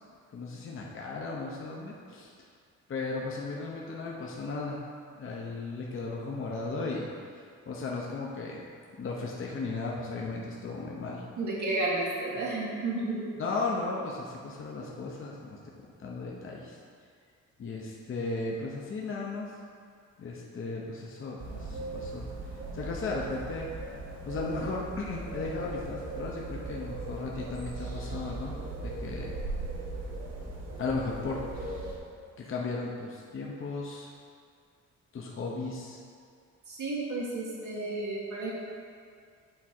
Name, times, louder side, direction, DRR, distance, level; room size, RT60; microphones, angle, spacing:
voice 1, 0.3-2.3 2.9-4.8 5.2-7.1 7.4-8.6 9.0-11.2 13.4-15.6 16.0-16.8 17.6-19.5 20.2-22.3 22.7-23.7 24.2-29.3 30.8-31.8 32.4-34.1 35.1-36.0, left 3 dB, 45° left, -3 dB, 0.9 m, -35 dB
voice 2, 11.4-13.2 36.7-38.5, right 2 dB, 75° right, -6 dB, 1.5 m, -32 dB
sound 1, 21.4-32.0, right 2 dB, 55° right, 1.3 m, -38 dB
8.7 x 3.6 x 4.4 m, 2.2 s
cardioid pair, 90°, 30 cm